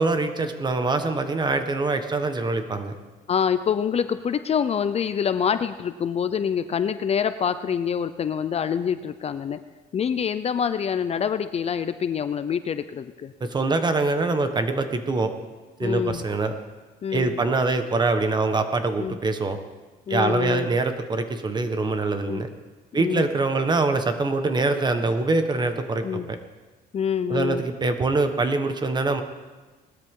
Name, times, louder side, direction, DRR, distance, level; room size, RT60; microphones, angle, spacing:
voice 1, 0.0-2.9 13.4-15.3 15.8-16.5 17.1-19.6 20.1-22.5 22.9-26.4 27.3-29.2, right 3 dB, 25° right, 7 dB, 1.4 m, -24 dB
voice 2, 3.3-9.6 9.9-13.3 15.8-16.2 17.0-17.4 19.0-19.2 20.1-20.7 22.3-22.4 22.9-23.3 26.0-26.3 26.9-27.6, left 7 dB, 40° left, 11 dB, 0.6 m, -26 dB
19.5 x 13.0 x 3.8 m, 1.3 s
cardioid pair, 110°, 17 cm